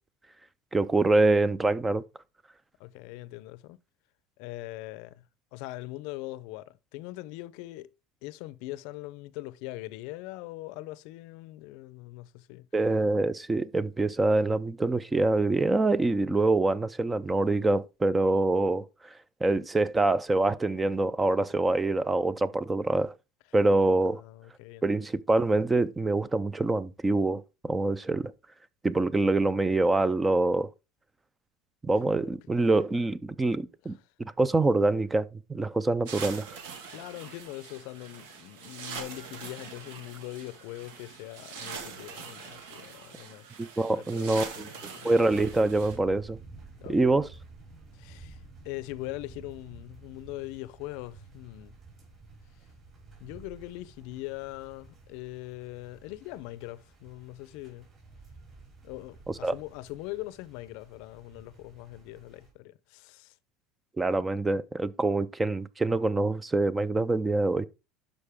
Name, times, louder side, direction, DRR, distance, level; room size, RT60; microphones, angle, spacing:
voice 1, 0.7-2.0 12.7-18.8 19.4-23.1 23.5-24.2 24.8-28.3 28.8-30.7 31.8-36.5 43.6-44.7 45.0-46.4 46.9-47.3 59.4-59.5 64.0-67.7, right 2 dB, 10° right, 0.3 m, -25 dB
voice 2, 2.8-3.8 4.4-5.2 5.5-7.9 8.2-12.7 24.1-24.8 33.8-33.9 36.9-43.5 43.8-45.1 46.8-47.2 47.9-51.8 53.2-57.9 58.8-63.3, left 18 dB, 65° left, 0.5 m, -41 dB
sound 1, 36.1-46.0, right 6 dB, 85° right, 1.9 m, -43 dB
sound 2, 45.3-62.5, right 3 dB, 30° right, 4.7 m, -51 dB
11.5 x 5.3 x 3.5 m
cardioid pair, 155°, 0 cm